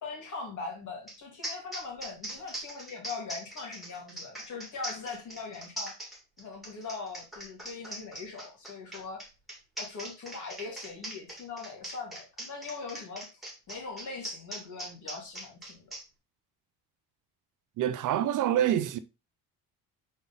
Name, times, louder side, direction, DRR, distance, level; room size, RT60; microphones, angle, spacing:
voice 1, 0.0-6.0 6.4-9.2 9.8-13.3 13.7-15.9, left 4 dB, 50° left, 3.3 m, -41 dB
sound 1, 1.1-1.2 1.4-16.0, right 1 dB, ahead, 2.5 m, -41 dB
voice 2, 17.8-19.0, right 11 dB, 55° right, 0.6 m, -26 dB
5.5 x 4.7 x 4.0 m
cardioid pair, 125°, 38 cm